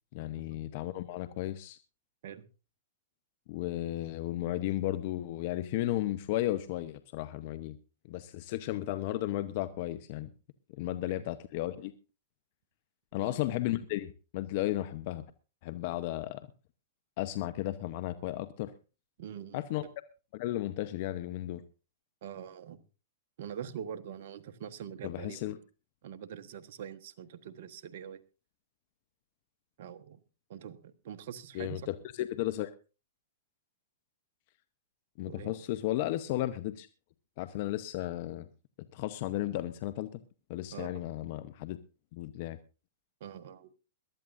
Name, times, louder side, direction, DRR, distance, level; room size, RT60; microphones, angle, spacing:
voice 1, 0.1-1.8 3.5-7.8 8.1-10.3 10.7-11.9 13.1-15.3 15.6-16.5 17.2-18.7 19.5-19.8 20.3-21.6 25.0-25.6 31.5-32.7 35.2-36.9 37.4-38.5 38.9-40.2 40.5-41.8 42.1-42.6, left 15 dB, 55° left, 12 dB, 0.9 m, -34 dB
voice 2, 19.2-19.9 22.2-22.8 23.4-25.4 26.0-28.2 29.8-30.2 30.5-31.8 35.3-35.5 40.7-41.0 43.2-43.7, right 9 dB, 60° right, 11 dB, 1.2 m, -44 dB
22.0 x 12.5 x 2.6 m, 0.32 s
hypercardioid pair, 120°, 0 cm